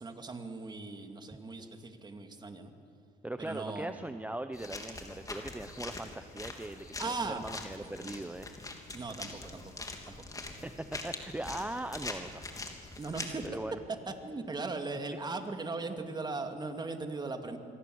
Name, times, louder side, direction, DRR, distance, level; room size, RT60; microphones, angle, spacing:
voice 1, 0.0-2.7 3.4-4.0 7.0-7.4 7.8-8.2 8.9-10.3 13.0-13.4 14.1-17.6, right 3 dB, 25° right, 6 dB, 2.5 m, -39 dB
voice 2, 3.2-8.6 10.5-12.4 13.4-13.8, right 1 dB, 10° right, 9 dB, 0.8 m, -40 dB
sound 1, 4.5-13.5, left 3 dB, 20° left, 3.2 m, -43 dB
27.5 x 23.0 x 8.0 m, 2.6 s
cardioid pair, 110°, 17 cm